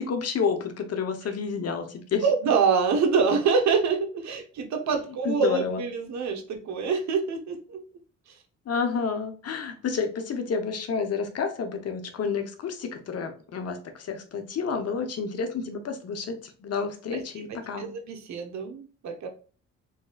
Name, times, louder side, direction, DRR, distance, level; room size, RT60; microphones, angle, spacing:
voice 1, 0.0-2.2 5.2-5.8 8.7-17.9, left 5 dB, 55° left, 7 dB, 0.9 m, -30 dB
voice 2, 2.2-7.8 8.3-8.4 17.1-17.2 17.8-19.3, right 5 dB, 65° right, 5 dB, 1.0 m, -25 dB
4.0 x 3.8 x 2.4 m, 0.39 s
cardioid pair, 90°, 30 cm